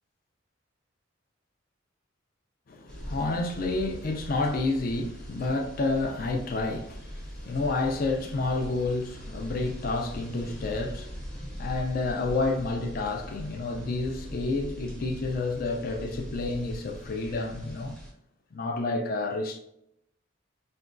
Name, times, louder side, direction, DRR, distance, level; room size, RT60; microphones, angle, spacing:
voice 1, 2.7-18.0 18.5-19.6, left 3 dB, 45° left, 0.4 m, -30 dB
sound 1, 2.9-18.1, equal, 5° left, 0.7 m, -41 dB
5.8 x 2.2 x 2.5 m
head